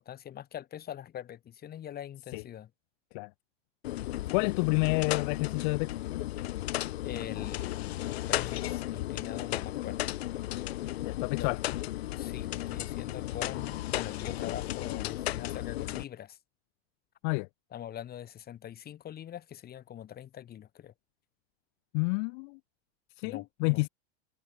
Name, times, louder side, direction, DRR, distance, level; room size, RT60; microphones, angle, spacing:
voice 1, 0.0-2.7 7.0-8.0 8.3-10.1 11.4-11.5 12.2-16.4 17.7-20.9 23.2-23.8, left 10 dB, 30° left, 5.2 m, -43 dB
sound 1, 3.8-16.0, left 15 dB, 80° left, 3.0 m, -34 dB
voice 2, 4.3-5.9 11.0-11.6 17.2-17.5 21.9-22.6 23.2-23.9, left 35 dB, 55° left, 1.0 m, -29 dB
supercardioid pair, 130°, 31 cm